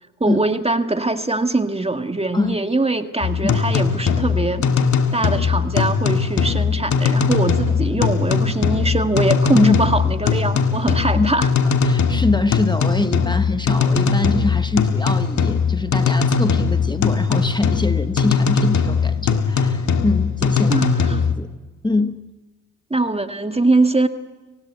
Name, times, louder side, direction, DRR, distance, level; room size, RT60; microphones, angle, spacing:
voice 1, 0.2-4.7 5.1-11.5 20.7-21.2 22.9-24.1, right 2 dB, 20° right, 7 dB, 1.8 m, -22 dB
sound 1, 3.2-21.3, left 5 dB, 55° left, 1.9 m, -20 dB
voice 2, 11.8-20.8 21.4-21.5 21.8-22.2, left 2 dB, 15° left, 10 dB, 1.2 m, -23 dB
29.5 x 17.0 x 8.2 m, 1.2 s
supercardioid pair, 50°, 33 cm